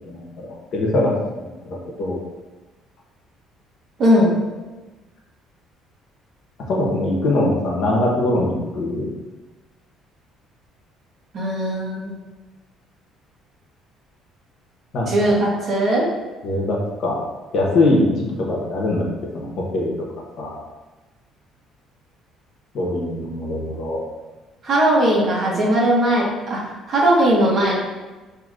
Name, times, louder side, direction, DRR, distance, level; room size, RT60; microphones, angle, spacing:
voice 1, 0.1-2.2 6.7-9.0 14.9-15.3 16.4-17.2 17.5-19.0 19.3-19.9 20.4-20.6 22.7-24.0, left 2 dB, 55° left, -2 dB, 1.0 m, -22 dB
voice 2, 4.0-4.3 11.3-12.2 15.1-16.1 24.6-26.6 26.9-27.9, right 1 dB, 40° right, -4 dB, 1.2 m, -18 dB
5.8 x 2.8 x 2.5 m, 1.2 s
cardioid pair, 140°, 0 cm